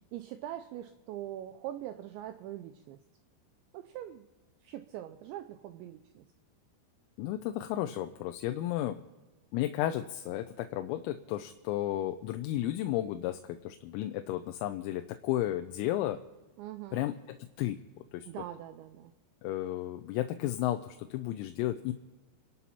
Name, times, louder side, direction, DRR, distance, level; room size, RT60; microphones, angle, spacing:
voice 1, 0.0-3.0 3.7-4.3 4.6-6.3 16.6-17.0 18.3-19.1, right 12 dB, 90° right, 9 dB, 2.6 m, -42 dB
voice 2, 7.2-9.0 9.5-16.2 16.9-17.8 18.1-18.3 19.4-21.9, left 13 dB, 85° left, 7 dB, 3.4 m, -33 dB
29.0 x 11.0 x 4.3 m, 1.2 s
omnidirectional pair, 6.0 m